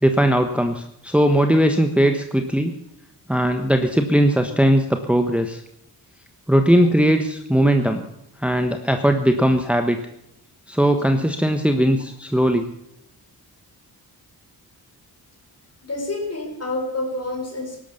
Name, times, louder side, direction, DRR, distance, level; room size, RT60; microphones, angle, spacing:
voice 1, 0.0-2.7 3.3-5.6 6.5-8.0 8.4-10.0 10.7-12.7, equal, 5° right, 6 dB, 1.3 m, -19 dB
voice 2, 15.8-17.8, left 2 dB, 40° left, 4 dB, 4.7 m, -28 dB
16.5 x 12.0 x 7.1 m, 0.77 s
cardioid pair, 85°, 39 cm